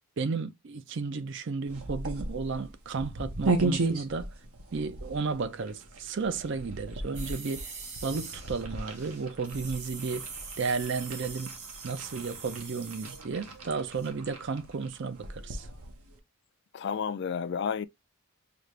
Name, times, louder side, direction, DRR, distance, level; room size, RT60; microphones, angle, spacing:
voice 1, 0.2-4.3 4.7-7.7 8.0-11.5 11.8-15.7, right 4 dB, 55° right, 0.4 m, -33 dB
sound 1, 1.7-16.2, right 3 dB, 75° right, 1.1 m, -36 dB
sound 2, 7.1-13.6 13.9-14.1, right 5 dB, 30° right, 0.9 m, -44 dB
voice 2, 16.7-17.9, left 6 dB, 50° left, 0.3 m, -31 dB
5.1 x 2.5 x 3.1 m
head